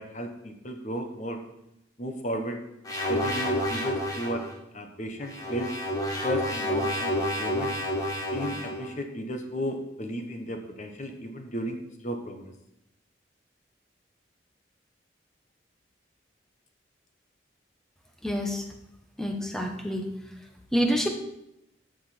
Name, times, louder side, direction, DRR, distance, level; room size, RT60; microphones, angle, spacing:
voice 1, 0.0-1.4 2.0-2.6 3.1-4.5 4.7-5.7 6.2-7.7 8.3-12.5, equal, 40° left, 5 dB, 1.3 m, -34 dB
sound 1, 2.9-4.5 5.2-8.9, equal, 20° left, 1.5 m, -29 dB
voice 2, 18.2-18.6 19.2-20.1 20.7-21.1, equal, 5° left, 3 dB, 1.1 m, -27 dB
14.5 x 5.3 x 4.4 m, 0.83 s
head